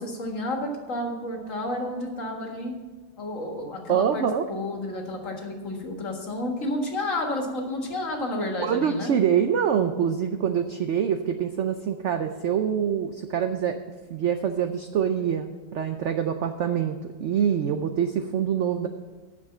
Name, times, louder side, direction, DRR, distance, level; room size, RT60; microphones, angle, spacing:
voice 1, 0.0-2.7 3.2-9.1, left 1 dB, 50° left, 2 dB, 1.9 m, -31 dB
voice 2, 3.9-4.5 8.6-13.8 14.1-18.9, right 8 dB, 70° right, 7 dB, 0.7 m, -25 dB
9.6 x 6.9 x 7.2 m, 1.4 s
omnidirectional pair, 1.8 m